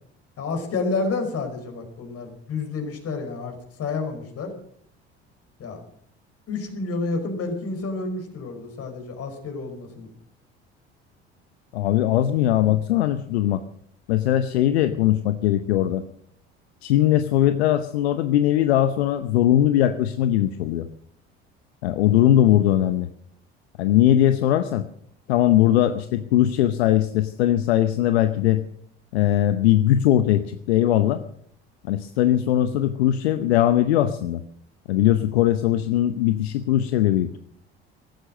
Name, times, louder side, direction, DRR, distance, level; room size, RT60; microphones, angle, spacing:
voice 1, 0.4-4.5 5.6-5.8 6.5-10.1, left 3 dB, 45° left, 5 dB, 5.0 m, -29 dB
voice 2, 11.7-13.6 14.1-16.0 16.8-20.9 21.8-23.1 23.8-24.8 25.3-28.6 29.1-31.2 31.8-34.4 34.9-37.4, left 12 dB, 75° left, 11 dB, 0.9 m, -20 dB
16.0 x 13.0 x 6.4 m, 0.66 s
hypercardioid pair, 60°, 32 cm